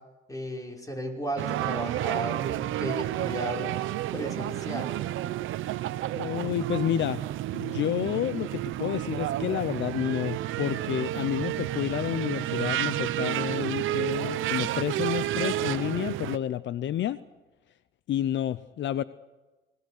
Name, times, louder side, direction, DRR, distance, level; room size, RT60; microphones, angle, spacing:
voice 1, 0.3-3.7 4.1-5.0, equal, 15° left, 1 dB, 5.5 m, -34 dB
sound 1, 1.4-16.4, right 14 dB, 80° right, 0.7 m, -31 dB
voice 2, 6.1-7.2 7.5-17.2 18.1-19.0, left 11 dB, 65° left, 15 dB, 0.7 m, -30 dB
27.5 x 19.5 x 6.5 m, 1.2 s
cardioid pair, 90°, 20 cm